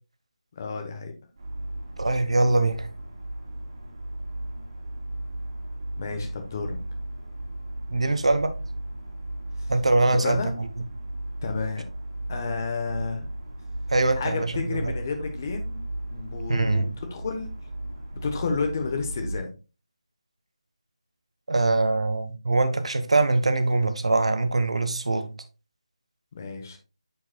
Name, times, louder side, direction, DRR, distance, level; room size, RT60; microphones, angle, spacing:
voice 1, 0.5-1.1 6.0-6.8 10.0-10.5 11.4-11.8 12.3-13.3 14.1-15.8 16.1-17.5 18.2-19.5 26.3-26.8, left 4 dB, 30° left, 1.0 m, -31 dB
sound 1, 1.4-19.4, right 1 dB, 40° right, 2.2 m, -35 dB
voice 2, 2.0-2.9 7.9-8.5 9.7-10.4 13.9-14.9 16.5-16.9 21.5-25.3, right 2 dB, 70° right, 1.1 m, -23 dB
9.1 x 5.2 x 2.2 m
figure-of-eight pair, 165°, 3 cm